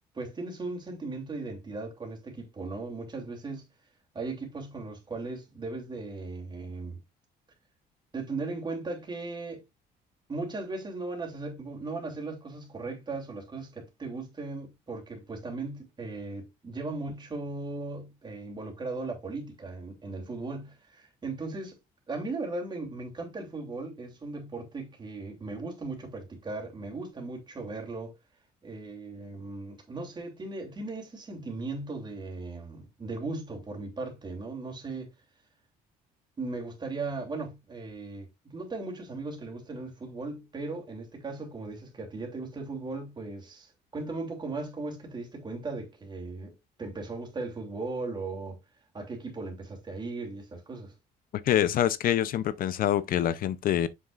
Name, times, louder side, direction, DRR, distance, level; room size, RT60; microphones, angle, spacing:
voice 1, 0.1-3.7 4.1-7.0 8.1-9.6 10.3-21.8 22.1-28.1 28.6-35.1 36.4-48.6 48.9-50.9, right 3 dB, 25° right, 2.9 m, -37 dB
voice 2, 51.4-53.9, left 11 dB, 60° left, 0.6 m, -25 dB
7.4 x 6.3 x 2.4 m
cardioid pair, 110°, 17 cm